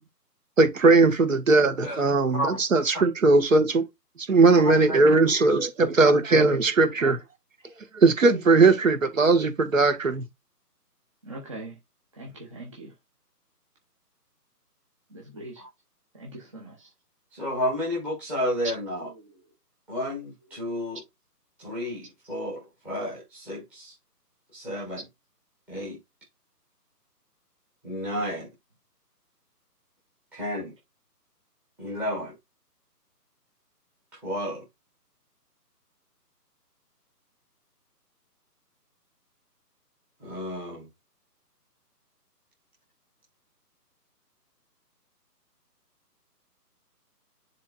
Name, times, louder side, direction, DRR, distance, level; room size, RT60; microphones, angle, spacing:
voice 1, 0.6-3.9 4.3-7.2 7.9-10.2, right 3 dB, 50° right, 1.7 m, -19 dB
voice 2, 4.5-5.0 15.6-15.7 17.4-19.1 19.9-21.0 21.6-23.9 24.5-25.0 25.7-26.0 27.8-28.5 30.3-30.7 31.8-32.3 34.2-34.6 40.2-40.9, equal, 5° right, 1.1 m, -31 dB
voice 3, 11.2-11.7 12.2-12.9 15.1-15.6 16.2-16.7 18.9-19.1, right 1 dB, 20° right, 0.9 m, -41 dB
10.5 x 3.6 x 2.5 m
figure-of-eight pair, 150°, 49 cm